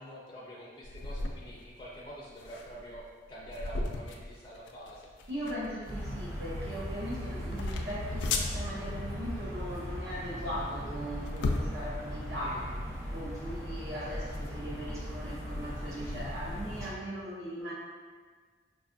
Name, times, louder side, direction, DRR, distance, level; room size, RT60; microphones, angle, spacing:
voice 1, 0.0-5.3 12.4-12.8, equal, 25° left, -6 dB, 0.4 m, -46 dB
sound 1, 0.8-16.6, left 2 dB, 90° left, 0.4 m, -39 dB
voice 2, 5.3-12.6 13.1-17.7, equal, 70° right, -6 dB, 0.6 m, -39 dB
sound 2, 5.9-16.9, equal, 15° right, 0.7 m, -38 dB
5.0 x 2.3 x 2.5 m, 1.5 s
head